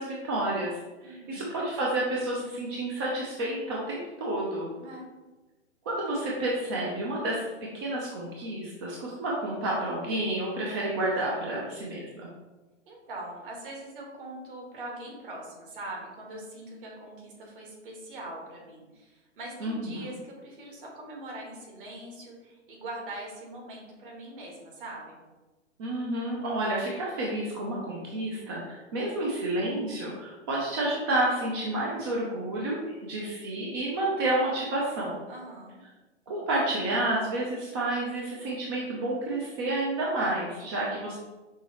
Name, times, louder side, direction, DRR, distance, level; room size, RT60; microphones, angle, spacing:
voice 1, 0.0-4.7 5.9-12.3 19.6-20.1 25.8-35.2 36.3-41.2, right 1 dB, 20° right, -3 dB, 0.4 m, -30 dB
voice 2, 1.0-1.5 4.8-5.1 12.9-25.2 35.3-35.8, right 1 dB, 45° right, -1 dB, 1.5 m, -42 dB
5.5 x 3.0 x 2.9 m, 1.2 s
hypercardioid pair, 130°, 37 cm